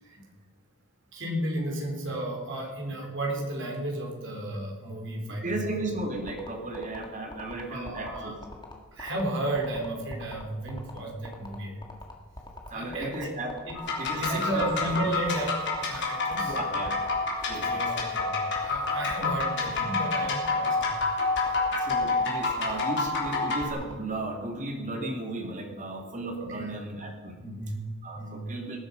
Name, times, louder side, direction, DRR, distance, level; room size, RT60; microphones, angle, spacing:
voice 1, 1.1-5.6 7.7-8.3 8.9-11.8 12.7-13.3 13.7-13.8 14.2-15.5 15.9-16.6 17.5-21.2 26.4-26.7 27.4-27.8 28.1-28.4, right 1 dB, 60° right, -1 dB, 3.8 m, -33 dB
voice 2, 5.4-8.3 12.7-13.5 14.0-14.7 16.4-16.9 17.5-17.9 21.7-27.4 28.0-28.8, right 2 dB, 35° right, 2 dB, 2.6 m, -35 dB
sound 1, 6.2-23.9, left 2 dB, 20° left, 1.8 m, -43 dB
sound 2, 13.7-23.7, left 3 dB, 55° left, 3.4 m, -28 dB
18.5 x 10.5 x 5.3 m, 1.4 s
head